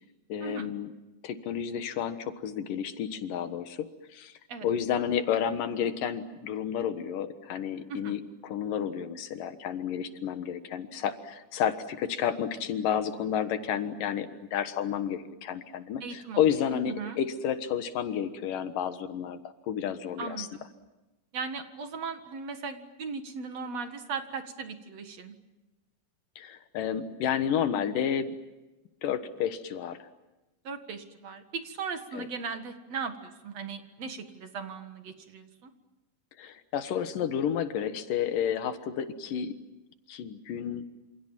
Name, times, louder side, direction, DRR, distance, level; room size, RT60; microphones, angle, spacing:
voice 1, 0.3-0.9 1.2-4.3 4.6-19.4 19.7-20.5 26.4-28.3 29.0-30.0 32.1-32.3 36.4-39.5 40.1-40.9, left 8 dB, 80° left, 9 dB, 3.0 m, -31 dB
voice 2, 16.0-16.4 16.7-17.2 20.2-20.7 21.3-25.3 30.6-35.7, right 5 dB, 55° right, 7 dB, 2.7 m, -38 dB
28.0 x 28.0 x 7.4 m, 1.1 s
omnidirectional pair, 3.8 m